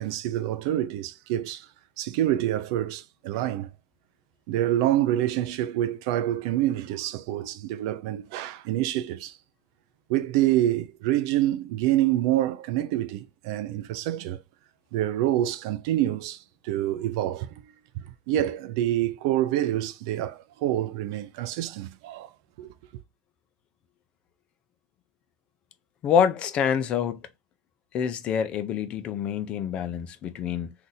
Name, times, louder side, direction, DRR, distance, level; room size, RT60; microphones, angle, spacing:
voice 1, 0.0-1.7 2.0-3.7 4.5-9.4 10.1-14.4 14.9-17.5 18.0-22.3 22.6-22.7, right 13 dB, 70° right, 0.4 m, -27 dB
voice 2, 26.0-27.2 27.9-30.7, left 7 dB, 45° left, 0.6 m, -26 dB
2.8 x 2.5 x 3.9 m
supercardioid pair, 105°, 3 cm